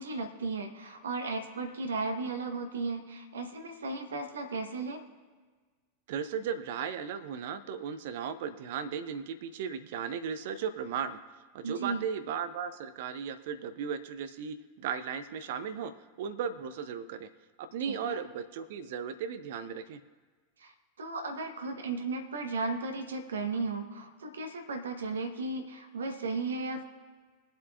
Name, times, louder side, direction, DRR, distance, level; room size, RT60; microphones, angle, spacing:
voice 1, 0.0-5.0 11.6-12.0 17.9-18.2 20.6-20.7 21.0-26.8, right 3 dB, 70° right, 5 dB, 1.2 m, -35 dB
voice 2, 6.1-11.2 11.5-15.9 16.2-17.3 17.6-20.0, right 7 dB, 55° right, 11 dB, 0.6 m, -36 dB
22.5 x 7.7 x 2.5 m, 1.4 s
figure-of-eight pair, 90°, 0 cm